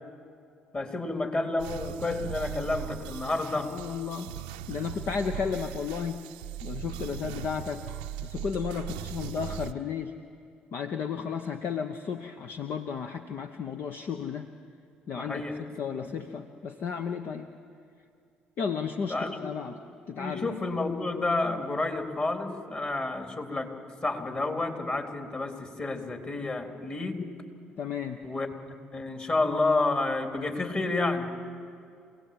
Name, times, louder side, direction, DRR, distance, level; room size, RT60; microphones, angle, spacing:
voice 1, 0.7-3.7 15.2-15.6 15.9-16.1 19.1-19.4 20.1-23.7 24.0-27.2 28.2-31.3, left 2 dB, 35° left, 4 dB, 3.9 m, -30 dB
sound 1, 1.6-9.7, right 12 dB, 85° right, 0.7 m, -39 dB
voice 2, 3.6-4.4 4.7-6.3 6.6-7.8 8.2-10.1 10.7-14.5 15.1-15.4 15.7-17.5 18.6-19.8 20.1-20.4 27.8-28.2, left 6 dB, 55° left, 6 dB, 1.0 m, -33 dB
27.5 x 18.0 x 8.8 m, 2.4 s
hypercardioid pair, 50°, 4 cm